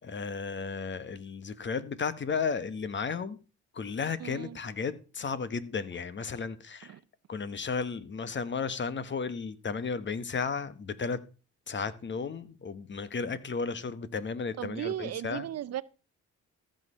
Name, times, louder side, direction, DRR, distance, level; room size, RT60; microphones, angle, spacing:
voice 1, 0.0-3.4 3.7-6.9 7.3-11.2 11.7-15.5, left 5 dB, 40° left, 1.2 m, -34 dB
voice 2, 4.2-4.6 6.8-7.0 14.6-15.8, right 11 dB, 55° right, 0.7 m, -36 dB
14.5 x 6.6 x 5.5 m
cardioid pair, 90°, 30 cm